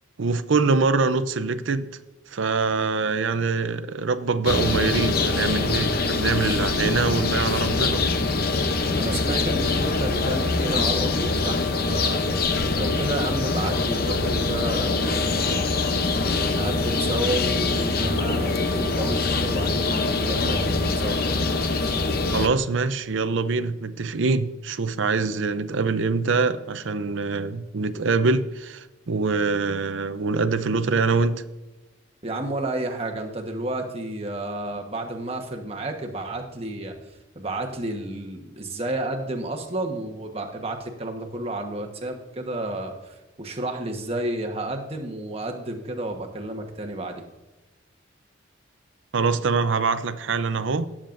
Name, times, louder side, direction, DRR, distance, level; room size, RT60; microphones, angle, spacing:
voice 1, 0.2-1.9 2.3-8.1 22.1-31.4 49.1-50.9, right 4 dB, 70° right, 0.6 m, -24 dB
sound 1, 4.4-22.5, left 3 dB, 50° left, 0.7 m, -24 dB
voice 2, 9.0-12.2 12.7-15.6 16.5-21.2 32.2-37.0 37.3-47.2, right 1 dB, 30° right, 1.2 m, -31 dB
17.5 x 7.3 x 2.6 m
head